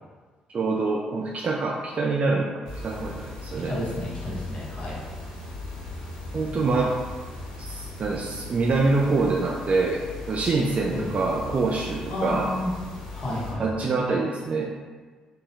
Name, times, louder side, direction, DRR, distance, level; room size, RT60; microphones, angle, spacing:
voice 1, 0.5-3.7 6.3-7.0 7.6-12.5 13.6-14.7, right 3 dB, 40° right, -1 dB, 0.3 m, -25 dB
sound 1, 2.6-13.5, left 3 dB, 75° left, 0.6 m, -38 dB
voice 2, 3.6-5.0 10.9-11.1 12.1-12.7 13.1-13.6, left 1 dB, 40° left, -7 dB, 1.1 m, -31 dB
3.3 x 2.1 x 2.7 m, 1.4 s
figure-of-eight pair, 45°, 3 cm